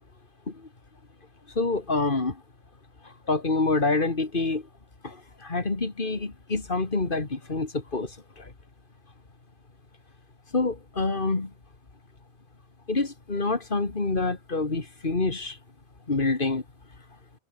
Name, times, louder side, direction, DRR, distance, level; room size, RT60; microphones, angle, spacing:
voice 1, 1.6-2.4 3.3-4.6 5.0-5.2 5.4-8.1 8.4-8.5 10.5-11.5 12.9-15.6 16.1-16.6, left 3 dB, 45° left, 2.5 m, -26 dB
omnidirectional pair, 1.2 m